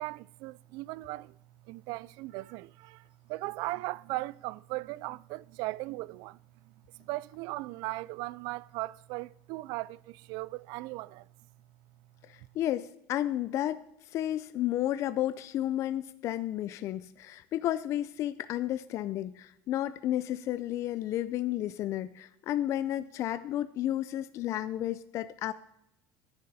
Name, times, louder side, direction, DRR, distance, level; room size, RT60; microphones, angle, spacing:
voice 1, 0.0-1.4 1.7-6.4 6.6-6.7 7.0-11.3, right 20 dB, 65° right, 0.4 m, -38 dB
voice 2, 12.2-13.8 14.1-25.5, left 12 dB, 40° left, 0.4 m, -32 dB
17.5 x 10.5 x 4.2 m
cardioid pair, 155°, 7 cm